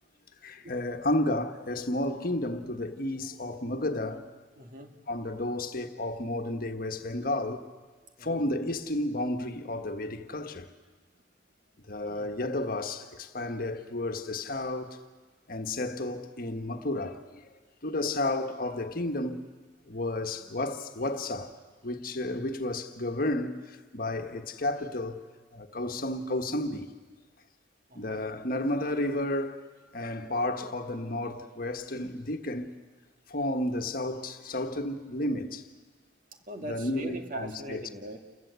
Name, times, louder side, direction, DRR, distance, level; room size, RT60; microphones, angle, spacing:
voice 1, 0.4-4.3 5.1-7.6 8.2-10.7 11.9-15.0 15.5-17.4 17.8-19.4 19.9-21.5 21.8-25.2 25.5-26.9 27.9-29.6 29.9-32.8 33.3-35.6 36.7-37.8, left 1 dB, 50° left, 1.4 m, -32 dB
voice 2, 4.6-4.9 8.2-8.6 12.0-12.4 27.9-28.2 36.5-38.2, right 1 dB, 45° right, 2.3 m, -41 dB
29.0 x 22.0 x 8.2 m
head